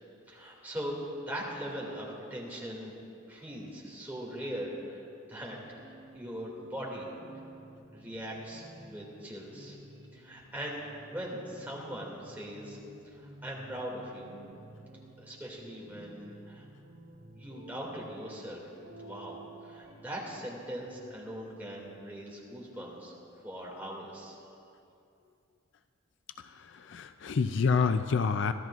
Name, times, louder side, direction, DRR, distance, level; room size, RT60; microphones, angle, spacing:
voice 1, 0.3-2.9 3.3-5.6 5.8-7.1 7.9-9.8 10.1-12.8 13.0-14.3 15.2-16.6 17.3-18.7 19.0-23.1 23.4-24.4, equal, 10° right, -4 dB, 2.3 m, -40 dB
sound 1, 5.3-22.0, right 2 dB, 60° right, 2.8 m, -53 dB
voice 2, 26.4-28.5, left 5 dB, 60° left, 10 dB, 0.4 m, -28 dB
24.0 x 14.0 x 2.5 m, 2.6 s
head